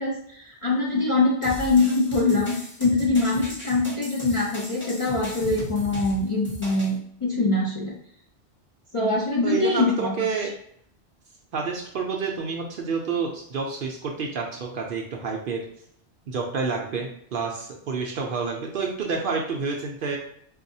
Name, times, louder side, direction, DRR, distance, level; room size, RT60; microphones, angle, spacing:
voice 1, 0.0-7.9 8.9-10.1, left 3 dB, 40° left, -5 dB, 0.5 m, -23 dB
sound 1, 1.4-7.0, equal, 10° left, 0.7 m, -37 dB
voice 2, 9.4-10.5 11.5-15.6 16.3-20.2, right 5 dB, 60° right, 0 dB, 0.6 m, -29 dB
4.2 x 2.3 x 2.6 m, 0.67 s
omnidirectional pair, 1.2 m